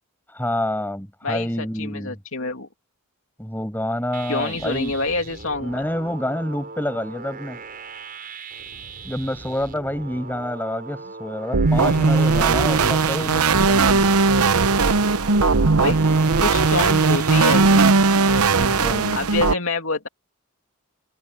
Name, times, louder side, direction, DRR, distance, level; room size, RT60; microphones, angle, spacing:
voice 1, 0.3-2.2 3.4-4.9 5.6-7.6 9.0-14.1 18.6-19.3, left 1 dB, 10° left, 6.1 m, -28 dB
voice 2, 1.2-2.7 4.3-5.8 15.8-16.0 16.4-18.0 19.1-20.1, left 3 dB, 65° left, 2.6 m, -27 dB
sound 1, 4.1-17.4, right 4 dB, 40° right, 6.8 m, -39 dB
sound 2, 11.5-19.5, right 4 dB, 85° right, 0.9 m, -18 dB
head